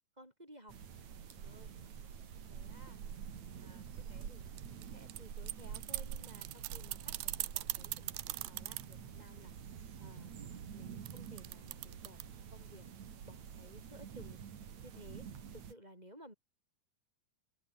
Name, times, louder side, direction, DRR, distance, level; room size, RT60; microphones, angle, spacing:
voice 1, 0.2-0.8 1.2-1.7 2.5-3.0 3.6-4.6 4.9-9.5 10.0-12.9 13.2-14.4 14.8-15.3 15.5-16.3, equal, 10° right, 7.3 m, -57 dB
sound 1, 0.7-15.7, right 8 dB, 50° right, 3.4 m, -48 dB
sound 2, 4.6-8.9 11.1-12.2, right 20 dB, 80° right, 2.5 m, -40 dB
open air
omnidirectional pair, 4.7 m